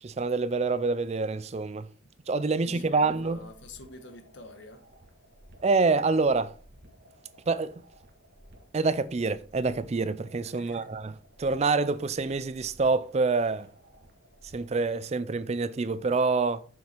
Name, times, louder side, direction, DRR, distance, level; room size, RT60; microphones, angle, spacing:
voice 1, 0.0-1.9 2.3-3.4 5.6-6.5 7.5-7.8 8.7-11.1 11.4-13.7 14.5-16.6, right 4 dB, 30° right, 0.4 m, -26 dB
voice 2, 2.5-4.8 10.5-10.9, left 2 dB, 60° left, 1.3 m, -48 dB
sound 1, 2.8-14.8, equal, 55° right, 1.7 m, -57 dB
7.4 x 5.9 x 4.4 m
head